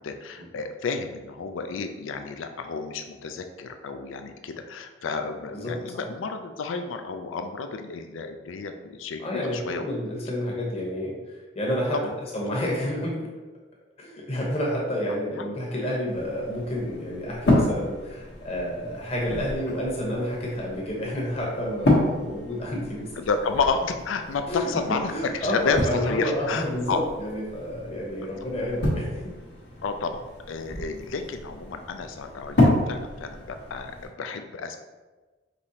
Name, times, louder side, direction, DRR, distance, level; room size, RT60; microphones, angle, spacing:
voice 1, 0.0-9.9 12.0-12.1 23.2-25.1 25.4-27.0 29.8-34.8, left 4 dB, 90° left, 7 dB, 0.4 m, -31 dB
voice 2, 5.5-6.0 9.2-12.0 12.3-13.3 14.0-23.1 24.5-24.7 25.1-29.2, equal, 30° left, -3 dB, 1.0 m, -30 dB
sound 1, 16.1-34.1, left 1 dB, 60° left, 1.1 m, -29 dB
5.2 x 3.0 x 2.8 m, 1.3 s
head